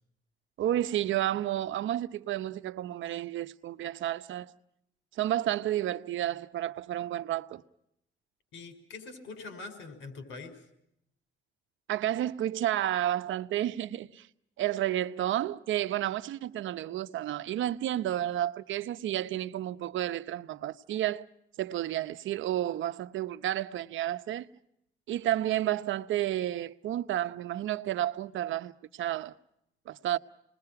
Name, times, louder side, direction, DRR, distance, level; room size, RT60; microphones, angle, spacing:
voice 1, 0.6-4.5 5.2-7.6 11.9-14.3 14.6-21.2 21.6-24.5 25.1-29.3 29.9-30.2, right 13 dB, 75° right, 0.9 m, -31 dB
voice 2, 8.5-10.6, left 3 dB, 80° left, 5.5 m, -44 dB
28.5 x 21.0 x 5.8 m
cardioid pair, 90°, 20 cm